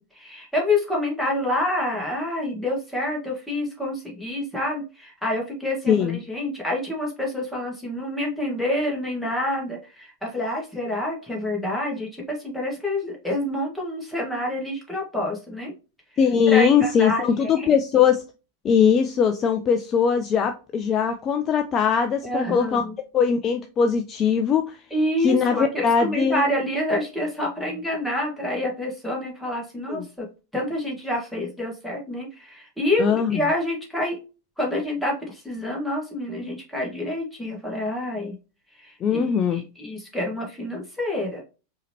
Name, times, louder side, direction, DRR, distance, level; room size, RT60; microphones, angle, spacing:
voice 1, 0.0-15.7 16.5-17.7 22.2-22.9 24.9-30.3 30.5-34.2 34.6-38.3 38.8-41.4, left 1 dB, ahead, -3 dB, 1.7 m, -27 dB
voice 2, 5.9-6.2 16.2-18.2 18.6-22.8 23.1-24.8 25.2-26.5 29.9-30.0 33.0-33.4 39.0-39.6, left 7 dB, 30° left, 6 dB, 0.4 m, -21 dB
4.8 x 2.9 x 2.9 m, 0.32 s
figure-of-eight pair, 90°, 0 cm